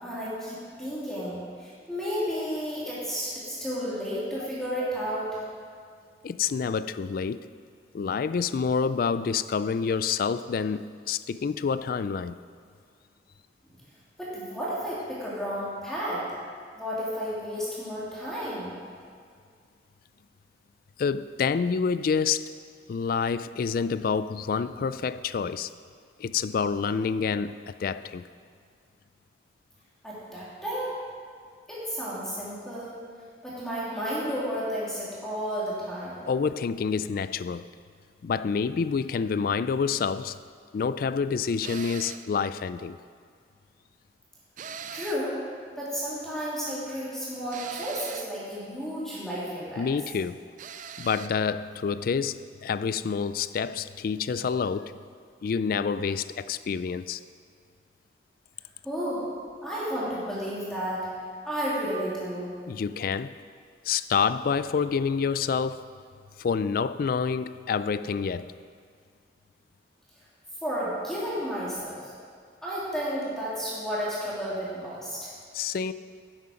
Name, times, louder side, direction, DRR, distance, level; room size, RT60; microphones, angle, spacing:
voice 1, 0.0-5.4 13.7-13.8 14.2-16.2 16.8-18.7 30.0-31.0 31.7-32.9 33.4-36.2 44.9-45.4 45.8-49.8 58.8-59.3 59.6-61.1 61.4-62.5 70.6-72.1 72.6-75.3, equal, 5° left, 2.6 m, -32 dB
voice 2, 6.2-7.4 7.9-12.4 21.0-22.4 22.9-25.7 26.2-28.2 36.3-37.7 38.2-40.4 40.7-43.0 49.8-50.4 51.0-54.9 55.4-57.2 62.7-63.3 63.8-65.8 66.4-68.5 75.5-75.9, left 6 dB, 55° left, 0.3 m, -28 dB
sound 1, 41.6-42.3 44.6-45.3 47.5-48.4 50.6-51.4, right 7 dB, 45° right, 0.4 m, -40 dB
11.0 x 7.8 x 5.0 m
head